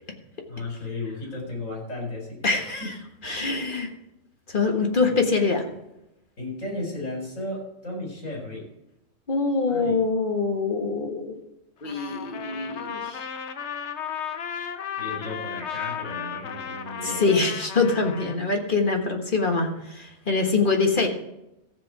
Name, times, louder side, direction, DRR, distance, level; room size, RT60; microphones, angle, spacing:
voice 1, 0.5-2.5 2.8-2.9 5.0-5.2 6.4-8.7 9.7-10.0 15.0-17.2, left 2 dB, 80° left, -1 dB, 4.8 m, -34 dB
voice 2, 2.4-2.9 3.2-3.9 4.5-5.6 9.3-11.3 11.8-13.3 17.0-21.1, left 4 dB, 40° left, 2 dB, 1.7 m, -24 dB
Trumpet, 11.8-18.4, left 8 dB, 65° left, 1.1 m, -34 dB
14.5 x 7.8 x 4.8 m, 0.88 s
omnidirectional pair, 1.3 m